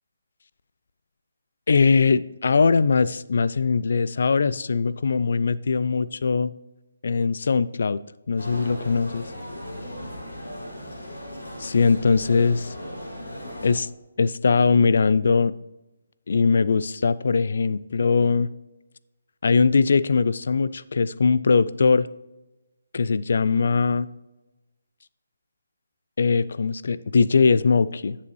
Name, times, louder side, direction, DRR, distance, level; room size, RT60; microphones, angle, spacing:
voice 1, 1.7-6.5 7.0-8.0 8.3-9.2 11.6-12.7 13.6-13.9 14.2-15.5 16.3-18.5 19.4-22.1 22.9-24.1 26.2-28.2, left 5 dB, 55° left, 17 dB, 0.3 m, -21 dB
sound 1, 8.4-13.7, left 1 dB, 85° left, 3.0 m, -37 dB
10.5 x 6.9 x 3.1 m, 1.0 s
figure-of-eight pair, 145°, 0 cm